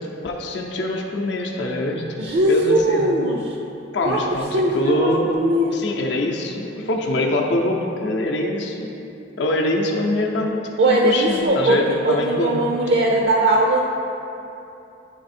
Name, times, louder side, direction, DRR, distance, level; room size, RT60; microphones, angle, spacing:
voice 1, 0.2-2.0 2.5-3.1 3.9-5.3 5.7-8.9 9.4-10.6 10.9-12.7, left 1 dB, 65° left, 0 dB, 0.6 m, -23 dB
voice 2, 2.2-3.6 4.0-4.2 4.5-5.7 10.8-11.8 12.0-13.8, right 1 dB, 60° right, -1 dB, 0.5 m, -19 dB
9.7 x 3.4 x 4.2 m, 2.8 s
head